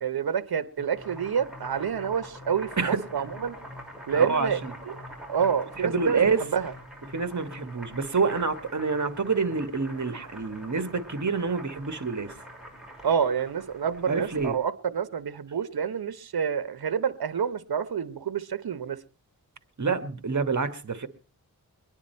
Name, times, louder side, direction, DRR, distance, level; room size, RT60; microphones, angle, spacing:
voice 1, 0.0-3.6 4.1-4.6 5.3-6.7 13.0-19.0, right 7 dB, 75° right, 12 dB, 0.9 m, -28 dB
sound 1, 0.8-8.3, left 4 dB, 20° left, 1.9 m, -50 dB
Boiling, 0.8-14.6, right 1 dB, ahead, 5.7 m, -45 dB
voice 2, 2.8-3.3 4.1-4.7 5.8-6.4 7.1-12.3 14.1-14.5 19.8-21.1, right 4 dB, 50° right, 10 dB, 1.4 m, -27 dB
23.0 x 10.0 x 4.3 m, 0.37 s
wide cardioid pair, 80°, 37 cm